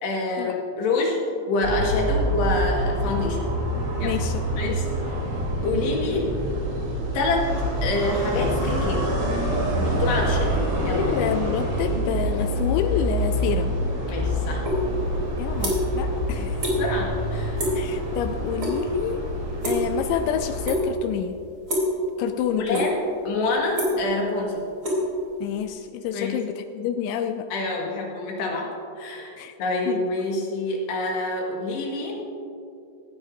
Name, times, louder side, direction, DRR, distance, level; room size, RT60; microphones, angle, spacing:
voice 1, 0.0-1.2 1.5-3.4 4.0-4.2 4.6-4.9 5.6-6.3 7.1-7.5 7.8-9.1 9.8-11.0 14.1-14.7 16.2-16.5 16.8-17.6 22.5-23.0 23.3-24.6 26.1-26.4 27.5-28.7 29.0-29.3 29.6-32.2, left 2 dB, 65° left, -1 dB, 3.6 m, -26 dB
sound 1, 1.6-20.7, equal, 85° right, 6.0 m, -26 dB
voice 2, 4.0-4.8 10.8-13.7 15.4-16.6 17.8-19.2 19.6-21.4 22.2-22.9 25.4-27.5 29.4-29.6 29.9-30.0, left 9 dB, 85° left, 8 dB, 2.5 m, -28 dB
sound 2, 14.6-14.8 15.2-16.0 16.3-16.8 17.1-17.3 17.6-17.9 18.2-18.8 19.0-20.2 20.6-21.1 21.6-22.0 22.4-23.1 23.4-25.7, equal, 20° right, 2.5 m, -27 dB
16.5 x 14.0 x 2.7 m, 2.6 s
omnidirectional pair, 5.5 m